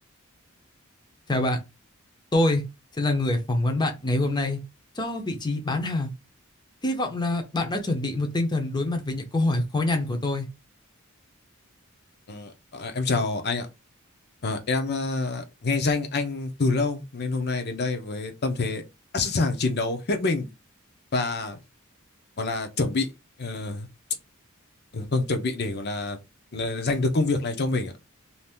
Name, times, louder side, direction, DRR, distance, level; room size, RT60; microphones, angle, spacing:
voice 1, 2.3-2.6 3.0-4.6 5.0-6.1 6.8-10.5, left 2 dB, 20° left, 0.7 m, -25 dB
voice 2, 12.3-13.7 14.4-18.8 19.1-20.5 21.1-21.6 22.4-23.1 23.4-23.9 24.9-26.2 26.5-27.9, left 3 dB, 50° left, 0.7 m, -27 dB
2.7 x 2.6 x 3.5 m
head